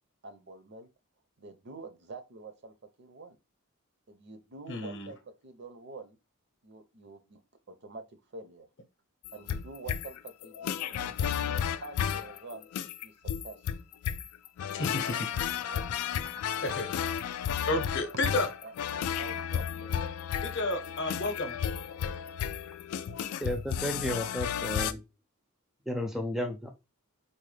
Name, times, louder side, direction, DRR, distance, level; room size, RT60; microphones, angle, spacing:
voice 1, 0.2-0.9 1.4-3.4 4.1-6.2 6.6-7.4 7.7-8.7 9.3-12.7 13.0-13.1 13.4-13.6 15.4-16.5 17.2-17.4 18.3-20.0, right 3 dB, 50° right, 0.6 m, -47 dB
voice 2, 4.7-5.1 14.7-15.3 16.6-16.9 17.7-18.5 20.4-21.5, left 2 dB, 55° left, 0.7 m, -31 dB
sound 1, 9.2-24.9, left 8 dB, 85° left, 0.3 m, -33 dB
voice 3, 23.4-25.0 25.9-26.7, equal, ahead, 0.4 m, -33 dB
3.9 x 2.1 x 3.2 m
head